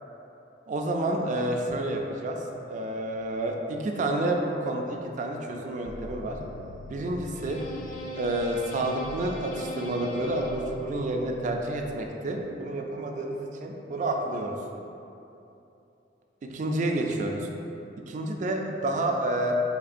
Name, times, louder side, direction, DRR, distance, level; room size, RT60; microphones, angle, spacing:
voice 1, 0.7-2.4 2.7-6.4 6.9-7.6 8.2-14.6 16.5-17.5 18.1-19.5, right 1 dB, 45° right, 2 dB, 0.3 m, -29 dB
sound 1, 5.9-12.1, equal, 45° left, 0.3 m, -40 dB
3.6 x 3.3 x 2.4 m, 2.8 s
head